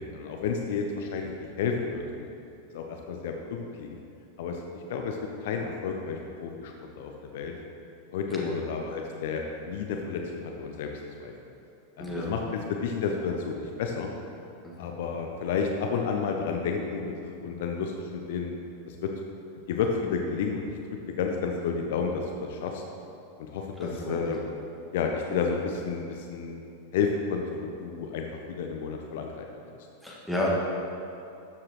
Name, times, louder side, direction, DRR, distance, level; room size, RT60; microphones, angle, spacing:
voice 1, 0.0-2.3 2.7-4.0 4.4-7.5 8.1-10.9 11.2-11.3 12.0-14.1 14.8-18.5 18.9-19.1 19.7-20.8 21.2-22.8 23.4-24.4 24.9-26.6 26.9-29.5, left 5 dB, 55° left, 2 dB, 0.7 m, -31 dB
voice 2, 12.0-12.3 14.6-14.9 23.8-24.3 30.0-30.5, left 1 dB, ahead, -5 dB, 1.9 m, -32 dB
12.5 x 7.4 x 3.1 m, 2.7 s
figure-of-eight pair, 90°, 0 cm